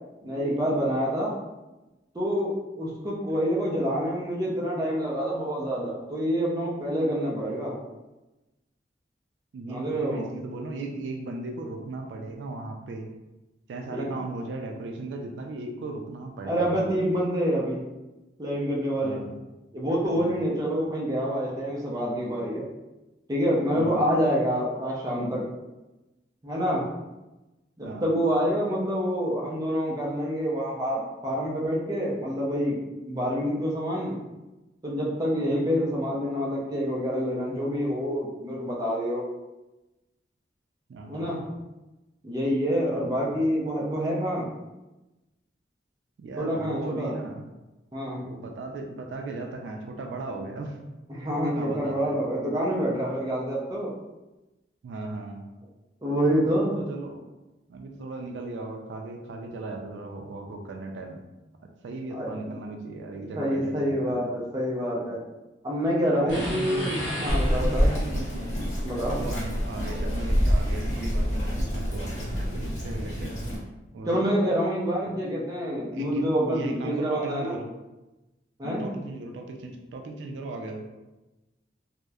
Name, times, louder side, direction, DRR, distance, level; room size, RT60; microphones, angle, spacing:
voice 1, 0.2-1.3 2.1-7.8 9.7-10.2 13.9-14.1 16.5-17.8 18.4-19.2 19.7-22.6 23.3-25.4 26.4-26.8 27.8-32.8 33.1-34.2 34.8-39.2 41.1-41.4 42.2-44.5 46.4-47.1 47.9-48.2 51.1-53.9 56.0-56.8 62.1-62.5 63.4-65.2 65.6-67.9 68.8-69.2 74.1-77.6 78.6-78.9, equal, 20° right, -4 dB, 0.5 m, -27 dB
voice 2, 9.5-13.1 13.7-16.9 19.0-19.3 20.1-20.4 23.7-24.0 27.8-28.1 40.9-41.5 42.9-43.1 46.2-47.5 48.2-50.8 51.3-52.2 54.8-55.4 56.6-57.3 57.7-61.2 61.8-64.3 66.2-68.6 69.0-73.4 73.9-74.3 75.8-77.7 78.6-80.9, right 2 dB, 85° right, 3 dB, 0.3 m, -37 dB
sound 1, 66.3-68.1, left 1 dB, 80° left, 0.7 m, -34 dB
Bird vocalization bird call bird song, 67.3-73.6, equal, 40° left, 0.6 m, -27 dB
2.8 x 2.0 x 2.3 m, 1.0 s
head